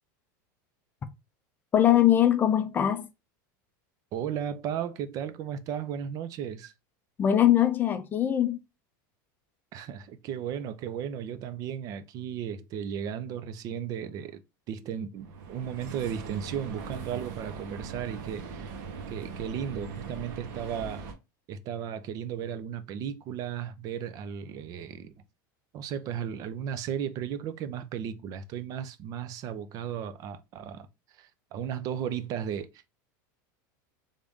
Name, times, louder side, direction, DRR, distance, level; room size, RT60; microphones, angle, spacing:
voice 1, 1.7-3.1 7.2-8.6, left 11 dB, 20° left, 0.4 m, -22 dB
voice 2, 4.1-6.7 9.7-14.4 14.7-18.7 19.1-21.0 21.5-25.1 25.7-30.9 31.2-32.7, right 8 dB, 35° right, 0.5 m, -35 dB
sound 1, 15.2-21.1, right 5 dB, 65° right, 1.0 m, -40 dB
3.5 x 2.6 x 3.4 m
supercardioid pair, 155°, 10 cm